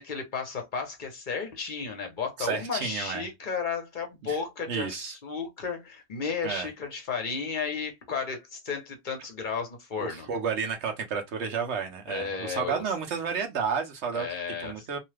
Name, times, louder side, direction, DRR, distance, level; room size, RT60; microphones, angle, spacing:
voice 1, 0.0-10.3 12.1-12.8 14.1-14.9, left 5 dB, 50° left, 1.0 m, -33 dB
voice 2, 2.4-3.3 4.3-4.4 4.7-5.2 6.4-6.7 10.0-15.0, right 6 dB, 85° right, 1.1 m, -31 dB
2.8 x 2.3 x 3.2 m
omnidirectional pair, 1.1 m